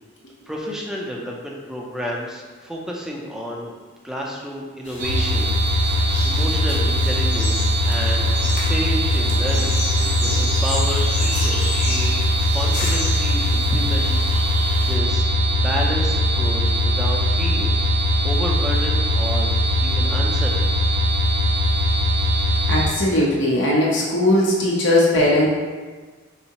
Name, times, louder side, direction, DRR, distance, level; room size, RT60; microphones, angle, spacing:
voice 1, 0.5-3.7 4.0-14.4 14.8-17.8 18.2-19.6 19.8-20.8, equal, 5° right, -2 dB, 0.4 m, -31 dB
sound 1, 4.8-14.9, left 2 dB, 40° left, 0.9 m, -32 dB
sound 2, 5.0-22.9, equal, 65° right, 0.7 m, -20 dB
voice 2, 10.0-10.4 22.7-25.5, left 1 dB, 65° left, -4 dB, 0.6 m, -19 dB
4.2 x 3.5 x 2.9 m, 1.4 s
head